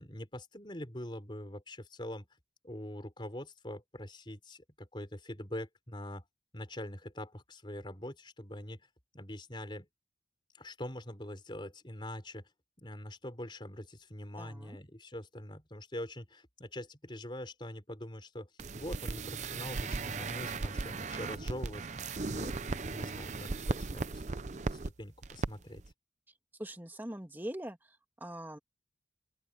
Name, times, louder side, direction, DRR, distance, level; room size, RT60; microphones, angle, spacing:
voice 1, 0.0-2.3 2.6-6.2 6.5-8.9 9.1-9.9 10.5-12.5 12.8-25.8, left 1 dB, 25° left, 4.5 m, -44 dB
voice 2, 14.4-14.8 26.6-28.6, right 1 dB, 10° right, 1.9 m, -42 dB
sound 1, 18.6-24.9 25.2-25.5 25.8-25.9, right 3 dB, 40° right, 0.6 m, -37 dB
open air
head